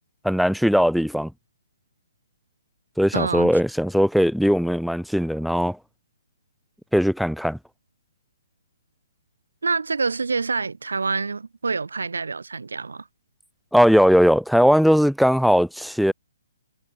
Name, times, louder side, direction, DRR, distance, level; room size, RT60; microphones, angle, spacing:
voice 1, 0.2-1.3 3.0-5.8 6.9-7.6 13.7-16.1, equal, ahead, 1.1 m, -19 dB
voice 2, 3.1-3.6 9.6-13.1, right 4 dB, 80° right, 3.3 m, -26 dB
hypercardioid pair, 140°, 0 cm